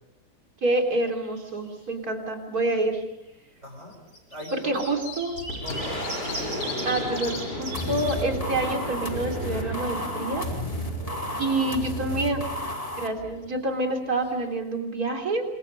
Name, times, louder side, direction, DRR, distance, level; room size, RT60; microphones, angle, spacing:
voice 1, 0.6-3.0 4.5-5.3 6.8-10.5 11.4-12.4 13.0-15.4, right 2 dB, 60° right, 2 dB, 3.9 m, -27 dB
Indigo Bunting, 0.7-1.4 1.7-1.8 2.9-3.0 3.9-8.2 8.6-8.7 9.0-10.0 13.9-14.0 14.2-14.3, equal, 45° left, 6.7 m, -37 dB
voice 2, 3.6-4.0 4.3-4.9 5.6-6.6 11.0-12.4, equal, 40° right, 1 dB, 7.4 m, -42 dB
Boom, 4.8-14.2, left 1 dB, 80° left, 6.7 m, -35 dB
sound 1, 7.7-13.1, equal, 20° left, 2.2 m, -33 dB
27.5 x 26.5 x 5.4 m, 0.88 s
omnidirectional pair, 1.8 m